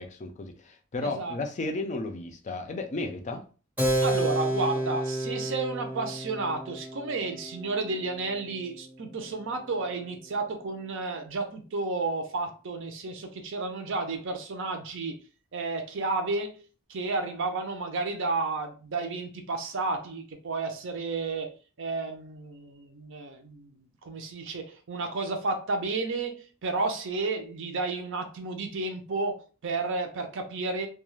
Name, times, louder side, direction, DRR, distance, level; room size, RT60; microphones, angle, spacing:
voice 1, 0.0-3.4, left 2 dB, 35° left, 0.4 m, -34 dB
voice 2, 1.0-1.4 4.0-15.2 15.5-16.6 16.9-30.9, right 3 dB, 60° right, 0.6 m, -32 dB
Keyboard (musical), 3.8-9.9, right 1 dB, 10° right, 0.7 m, -31 dB
2.3 x 2.3 x 3.1 m
head